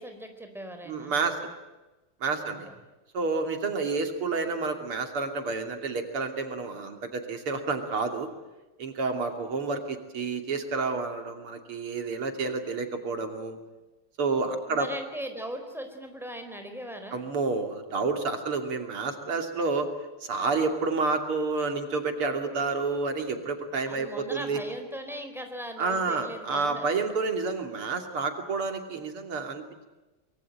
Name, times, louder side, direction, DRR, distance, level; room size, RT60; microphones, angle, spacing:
voice 1, 0.0-1.1 2.3-2.8 14.7-17.2 23.9-26.9, equal, ahead, 6 dB, 4.2 m, -39 dB
voice 2, 0.9-1.4 2.2-2.7 3.1-8.3 8.8-13.6 14.2-14.9 17.1-19.9 20.2-24.6 25.8-29.9, right 4 dB, 90° right, 6 dB, 3.8 m, -29 dB
24.5 x 23.0 x 9.0 m, 1.1 s
omnidirectional pair, 2.3 m